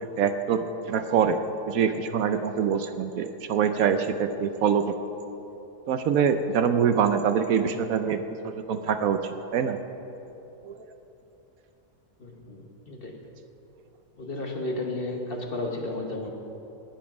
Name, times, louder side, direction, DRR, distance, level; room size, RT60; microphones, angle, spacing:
voice 1, 0.2-1.4 1.7-4.9 5.9-8.2 8.4-9.8 10.7-10.8, right 7 dB, 70° right, 9 dB, 1.0 m, -24 dB
voice 2, 12.2-13.2 14.2-16.3, left 2 dB, 40° left, 2 dB, 1.3 m, -33 dB
18.5 x 7.2 x 5.9 m, 3.0 s
omnidirectional pair, 1.6 m